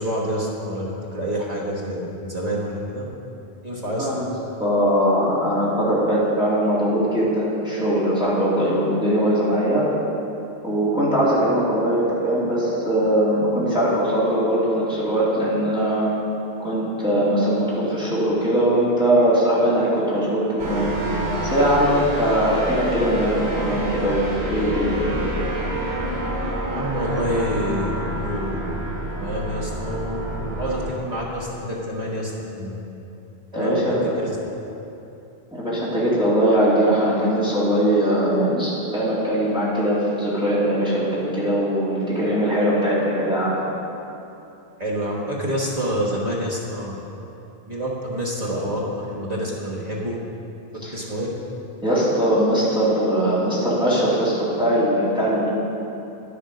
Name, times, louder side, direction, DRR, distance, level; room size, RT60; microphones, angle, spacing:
voice 1, 0.0-3.0 3.6-4.1 26.7-28.8 29.1-32.7 33.5-33.9 34.2-34.4 44.8-46.9 47.7-50.1 50.9-51.3, equal, 40° right, -4 dB, 1.5 m, -27 dB
voice 2, 4.6-9.9 10.6-16.1 16.6-21.0 21.4-25.1 33.5-34.1 35.5-43.6 50.8-50.9 51.8-55.5, right 1 dB, 5° right, -9 dB, 2.4 m, -21 dB
sound 1, 20.6-30.9, right 1 dB, 85° right, 2.1 m, -28 dB
10.5 x 7.0 x 5.1 m, 2.9 s
omnidirectional pair, 1.0 m